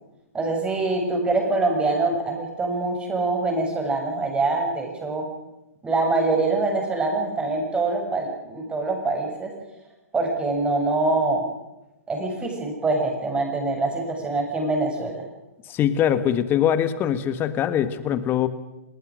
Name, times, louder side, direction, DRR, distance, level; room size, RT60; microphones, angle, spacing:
voice 1, 0.3-5.3 5.8-9.5 10.1-11.4 12.1-15.2, right 3 dB, 15° right, 2 dB, 7.3 m, -24 dB
voice 2, 15.7-18.5, left 10 dB, 25° left, 12 dB, 1.8 m, -22 dB
28.5 x 19.0 x 6.5 m, 0.96 s
figure-of-eight pair, 120°, 8 cm